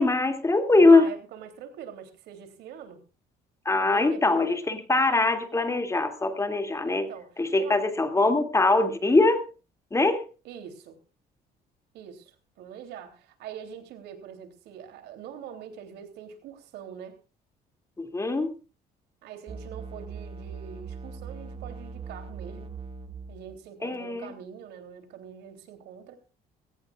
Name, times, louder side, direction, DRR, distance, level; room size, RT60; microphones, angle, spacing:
voice 1, 0.0-1.1 3.6-7.1 7.4-9.5 9.9-10.3 18.0-18.5 23.8-24.3, left 3 dB, 15° left, 7 dB, 2.6 m, -22 dB
voice 2, 0.8-3.0 3.7-4.6 6.8-7.3 7.6-7.8 10.4-11.0 11.9-17.2 19.2-22.7 23.3-26.2, right 8 dB, 80° right, 8 dB, 3.4 m, -43 dB
sound 1, 19.5-23.6, right 5 dB, 35° right, 2.1 m, -40 dB
21.0 x 17.5 x 2.5 m, 0.32 s
cardioid pair, 110°, 17 cm